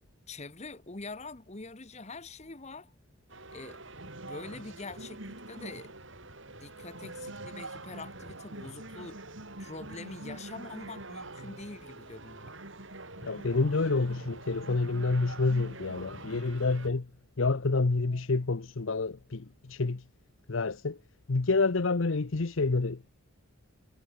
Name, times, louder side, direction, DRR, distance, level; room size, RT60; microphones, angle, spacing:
voice 1, 0.3-2.9 3.5-3.8 4.2-5.9 6.6-9.2 9.6-12.5, left 3 dB, 30° left, 1.2 m, -44 dB
sound 1, 3.3-16.9, right 2 dB, 60° right, 6.2 m, -45 dB
voice 2, 13.2-17.1 17.4-20.0 20.5-21.0 21.3-23.1, left 3 dB, 65° left, 0.8 m, -28 dB
head